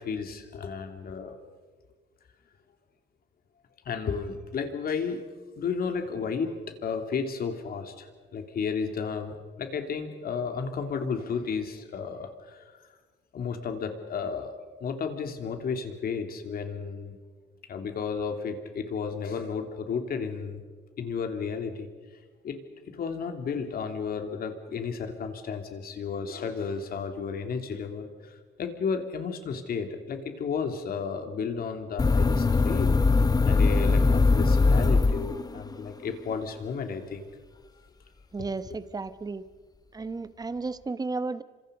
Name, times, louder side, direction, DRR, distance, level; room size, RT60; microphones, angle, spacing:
voice 1, 0.0-1.4 3.8-5.2 5.6-12.6 13.3-17.1 17.7-20.6 21.0-21.9 22.4-22.6 22.8-33.0 33.4-37.2, left 5 dB, 55° left, 6 dB, 3.1 m, -33 dB
sound 1, 32.0-35.7, left 3 dB, 20° left, 0.9 m, -21 dB
voice 2, 38.3-39.4 39.9-41.4, right 3 dB, 20° right, 13 dB, 1.1 m, -33 dB
29.0 x 26.0 x 5.3 m, 1.4 s
cardioid pair, 120°, 19 cm